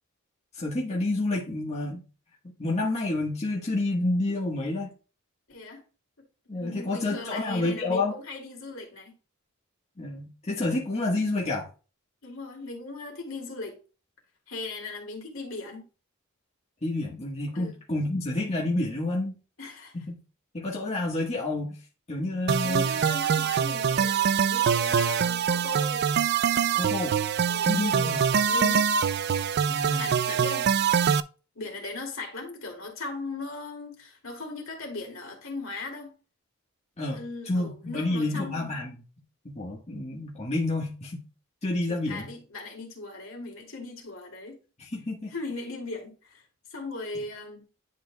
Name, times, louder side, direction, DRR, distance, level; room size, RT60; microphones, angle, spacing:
voice 1, 0.5-2.0 2.4-4.9 6.5-8.2 10.0-11.7 16.8-19.3 19.9-20.2 20.5-21.8 22.1-22.9 26.7-27.2 27.6-28.2 29.7-30.1 37.0-39.0 39.4-41.2 41.6-42.3 44.8-45.3, left 2 dB, 30° left, 1.4 m, -29 dB
voice 2, 5.5-5.8 6.5-9.2 12.2-13.8 14.5-15.9 17.5-17.8 19.6-20.0 22.6-26.1 27.5-28.9 29.4-29.5 29.9-30.7 31.5-36.1 37.1-38.7 41.9-44.6 45.3-46.4 46.7-47.6, left 3 dB, 65° left, 2.5 m, -38 dB
sound 1, 22.5-31.2, right 7 dB, 50° right, 0.3 m, -24 dB
10.5 x 4.6 x 2.2 m
head